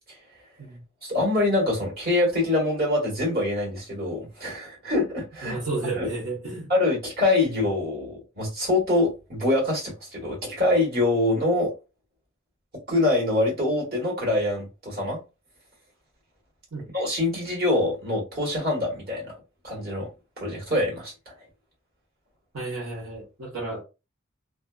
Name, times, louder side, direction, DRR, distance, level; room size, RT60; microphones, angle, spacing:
voice 1, 1.0-5.6 6.0-6.1 6.7-11.7 12.9-15.2 16.9-19.3 19.6-20.1 20.4-21.3, left 2 dB, 50° right, 1.4 m, -24 dB
voice 2, 5.4-6.7 16.7-16.9 22.5-23.8, right 2 dB, 80° right, 1.1 m, -32 dB
2.5 x 2.2 x 2.3 m
head